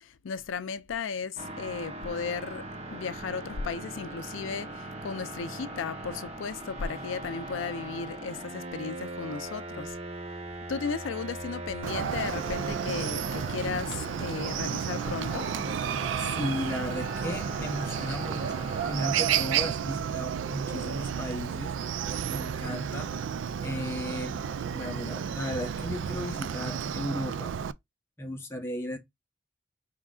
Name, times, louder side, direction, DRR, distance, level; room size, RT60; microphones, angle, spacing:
voice 1, 0.0-10.0 10.7-15.5, left 5 dB, 80° left, 0.4 m, -35 dB
sound 1, 1.4-19.4, right 1 dB, 30° right, 0.8 m, -40 dB
Chicken rooster, 11.8-27.7, right 8 dB, 75° right, 0.3 m, -32 dB
voice 2, 16.2-21.8 22.3-23.1 23.6-24.4 24.7-27.5 28.2-29.0, left 1 dB, 15° left, 0.7 m, -35 dB
5.0 x 3.6 x 2.3 m
head